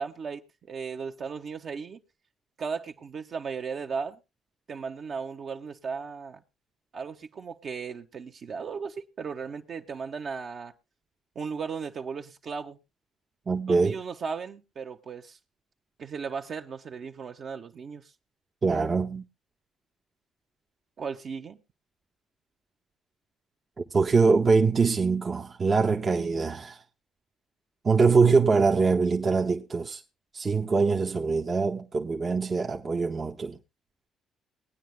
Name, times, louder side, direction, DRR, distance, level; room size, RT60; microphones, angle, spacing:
voice 1, 0.0-2.0 2.6-4.2 4.7-6.4 6.9-10.7 11.3-12.8 13.7-15.4 16.0-18.1 21.0-21.6, right 5 dB, 55° right, 1.3 m, -36 dB
voice 2, 13.5-14.0 18.6-19.2 23.9-26.8 27.8-30.0 30.3-33.6, right 4 dB, 40° right, 1.0 m, -23 dB
21.5 x 9.5 x 2.2 m
supercardioid pair, 60°, 0 cm